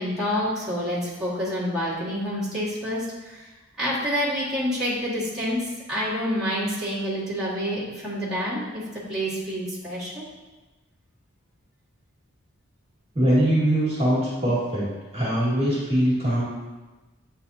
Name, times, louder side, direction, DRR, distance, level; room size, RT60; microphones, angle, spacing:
voice 1, 0.0-3.5 3.8-5.6 5.9-8.8 9.1-10.2, equal, 5° right, -12 dB, 1.9 m, -28 dB
voice 2, 13.1-14.8 15.1-16.4, right 1 dB, 30° right, -8 dB, 1.8 m, -22 dB
8.8 x 4.0 x 2.8 m, 1.2 s
head